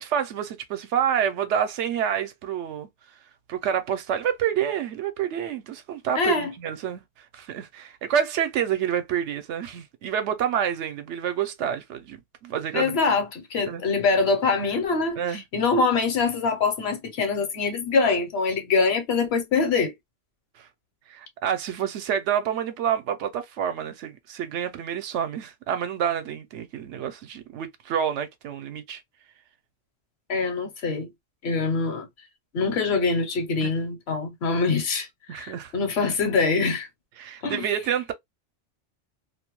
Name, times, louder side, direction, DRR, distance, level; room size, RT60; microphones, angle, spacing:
voice 1, 0.0-2.9 3.5-13.0 13.7-13.8 15.2-15.4 20.6-20.7 21.1-29.0 33.6-33.7 35.3-35.7 37.2-38.1, right 9 dB, 75° right, 0.9 m, -28 dB
voice 2, 6.2-6.5 12.7-19.9 30.3-31.1 31.4-32.1 32.5-36.9 37.4-37.6, left 4 dB, 65° left, 0.9 m, -24 dB
2.4 x 2.1 x 2.9 m
omnidirectional pair, 1.2 m